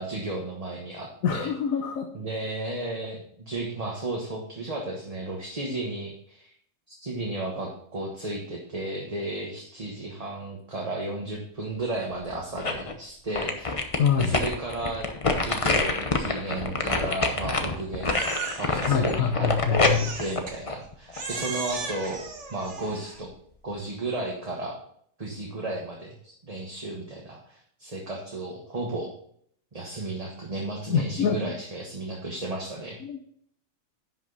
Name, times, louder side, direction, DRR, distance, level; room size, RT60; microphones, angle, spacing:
voice 1, 0.0-1.5 2.1-6.5 6.9-13.7 14.2-15.1 15.3-18.2 18.6-19.5 20.2-22.2 22.5-23.3 23.6-24.8 25.2-29.1 29.7-33.0, right 2 dB, 30° right, -1 dB, 1.3 m, -33 dB
voice 2, 1.2-2.1 14.0-14.3 18.9-20.1 30.9-31.4 33.0-33.2, left 7 dB, 90° left, 4 dB, 1.2 m, -25 dB
sound 1, 12.1-12.9 13.4-21.4 21.8-21.9, left 3 dB, 30° left, 0.8 m, -27 dB
Crying sobbing, 18.1-18.9 19.8-20.6 21.1-23.2, right 4 dB, 60° right, 1.6 m, -36 dB
10.5 x 5.9 x 4.0 m, 0.64 s
omnidirectional pair, 1.4 m